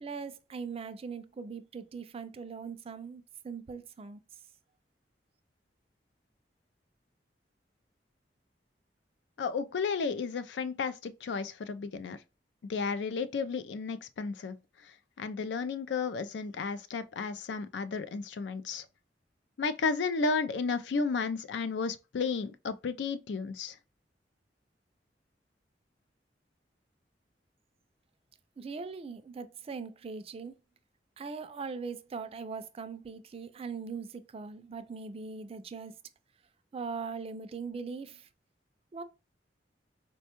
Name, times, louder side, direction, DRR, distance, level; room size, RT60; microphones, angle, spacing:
voice 1, 0.0-4.2 28.6-30.5 31.2-35.9 36.7-38.3 38.9-39.0, right 5 dB, 35° right, 0.3 m, -40 dB
voice 2, 9.4-12.2 12.7-14.6 15.2-18.9 19.6-23.7, left 4 dB, 85° left, 0.4 m, -33 dB
4.2 x 2.2 x 2.8 m
head